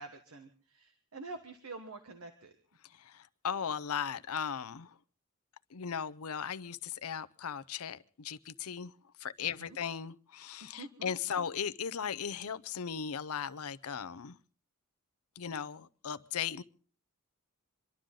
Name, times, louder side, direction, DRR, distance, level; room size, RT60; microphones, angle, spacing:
voice 1, 0.0-2.5 9.4-9.8 10.8-11.1, right 3 dB, 80° right, 1.4 m, -47 dB
voice 2, 3.0-4.9 5.7-8.9 9.2-14.4 15.4-16.6, left 7 dB, 80° left, 0.7 m, -37 dB
27.0 x 12.0 x 3.8 m
head